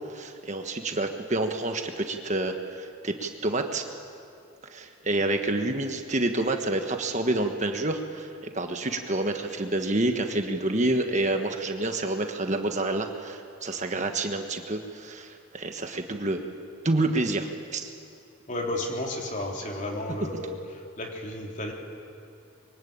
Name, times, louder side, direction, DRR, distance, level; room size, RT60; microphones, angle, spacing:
voice 1, 0.1-3.8 4.7-16.5 16.8-17.9, right 2 dB, 35° right, 5 dB, 1.4 m, -28 dB
voice 2, 18.5-21.7, left 1 dB, 35° left, 0 dB, 3.5 m, -33 dB
25.0 x 23.5 x 8.8 m, 2.5 s
head